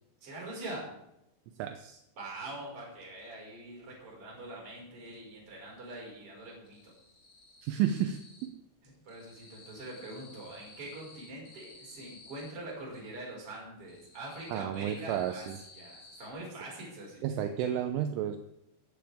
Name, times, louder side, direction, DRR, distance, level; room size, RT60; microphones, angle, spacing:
voice 1, 0.2-0.9 2.2-6.9 8.8-15.4 15.7-17.2, right 2 dB, 30° right, -3 dB, 6.2 m, -44 dB
voice 2, 1.6-2.0 7.6-8.5 14.5-15.6 17.2-18.4, right 10 dB, 80° right, 7 dB, 3.2 m, -32 dB
sound 1, 3.7-4.7 5.0-5.7 5.9-8.6 8.9-13.0 13.5-16.3, left 3 dB, 30° left, 2.1 m, -55 dB
17.5 x 14.0 x 3.7 m, 0.83 s
omnidirectional pair, 5.8 m